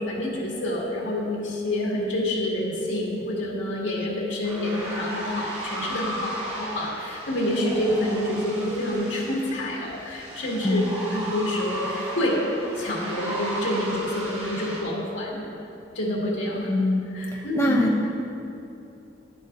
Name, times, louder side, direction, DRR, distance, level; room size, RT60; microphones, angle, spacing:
voice 1, 0.0-12.4 12.8-15.4 15.9-16.7 17.1-17.9, left 1 dB, 80° left, -3 dB, 1.9 m, -28 dB
sound 1, 4.4-14.8, right 1 dB, 35° right, 2.2 m, -35 dB
voice 2, 16.5-17.1 17.5-18.1, left 2 dB, 15° left, -1 dB, 0.5 m, -23 dB
11.5 x 9.1 x 2.6 m, 2.8 s
head